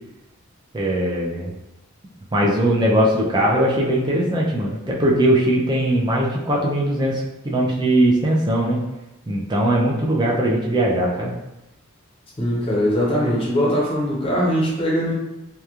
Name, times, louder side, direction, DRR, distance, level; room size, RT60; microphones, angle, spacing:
voice 1, 0.7-1.5 2.3-8.8 9.3-11.3, right 1 dB, 20° right, -3 dB, 0.4 m, -20 dB
voice 2, 12.4-15.1, equal, 25° left, -5 dB, 0.6 m, -21 dB
2.9 x 2.2 x 2.4 m, 0.94 s
head